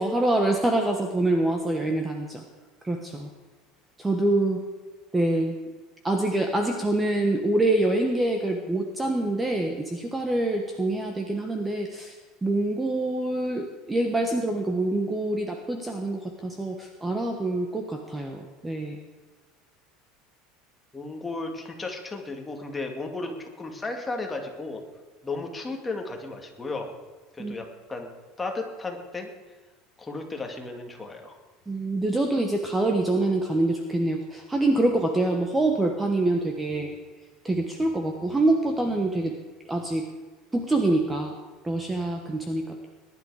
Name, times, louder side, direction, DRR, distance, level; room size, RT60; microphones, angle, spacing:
voice 1, 0.0-2.4 2.8-3.3 4.0-4.6 5.1-5.6 6.0-12.1 12.4-19.0 27.4-27.5 31.7-36.9 37.4-39.3 39.7-40.1 40.5-41.4 41.6-42.9, right 2 dB, 10° right, 3 dB, 1.2 m, -25 dB
voice 2, 20.9-24.8 25.2-26.9 27.3-28.1 28.4-29.3 30.0-31.4, left 3 dB, 10° left, 2 dB, 2.1 m, -34 dB
21.0 x 11.0 x 4.9 m, 1.3 s
supercardioid pair, 145°, 0 cm